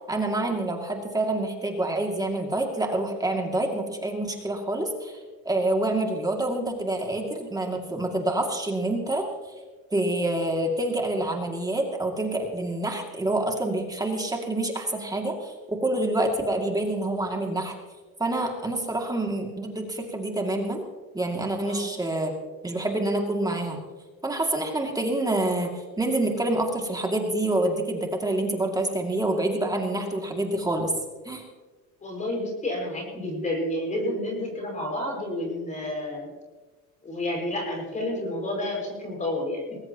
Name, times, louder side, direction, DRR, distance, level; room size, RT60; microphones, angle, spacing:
voice 1, 0.1-5.2 5.4-9.3 9.9-17.7 18.2-20.8 21.1-22.3 22.6-23.8 24.2-30.9 31.2-31.4, right 2 dB, 10° right, 2 dB, 2.3 m, -27 dB
voice 2, 32.0-36.3 37.0-39.8, left 1 dB, 20° left, 0 dB, 5.7 m, -30 dB
20.5 x 18.0 x 2.9 m, 1.3 s
cardioid pair, 130°, 33 cm